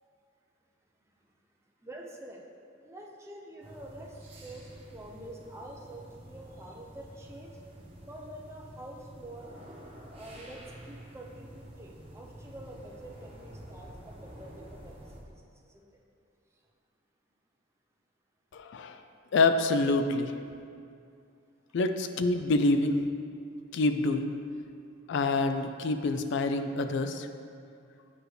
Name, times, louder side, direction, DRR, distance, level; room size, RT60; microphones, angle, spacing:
voice 1, 1.8-2.4 2.8-7.6 8.0-9.5 10.1-10.6 10.9-15.1 15.7-15.9, right 1 dB, 15° right, -2 dB, 0.6 m, -47 dB
sound 1, 3.6-15.2, right 1 dB, 30° right, 1.0 m, -49 dB
voice 2, 18.5-19.0 19.3-20.3 21.7-23.0 23.7-24.4 25.1-27.3, left 2 dB, 65° left, 8 dB, 0.4 m, -26 dB
7.6 x 4.9 x 3.2 m, 2.4 s
head